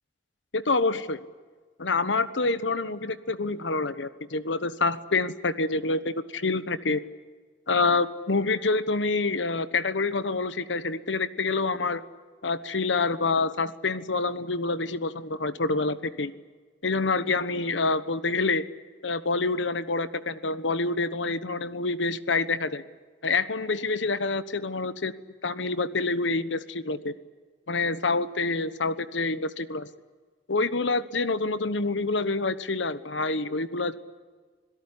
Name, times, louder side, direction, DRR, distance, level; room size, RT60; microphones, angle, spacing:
voice 1, 0.5-1.2 1.8-7.0 7.7-12.0 12.4-16.3 16.8-18.6 19.0-22.8 23.2-25.1 25.4-27.1 27.7-29.9 30.5-33.9, left 3 dB, 85° left, 14 dB, 1.2 m, -27 dB
26.5 x 17.5 x 9.9 m, 1.5 s
head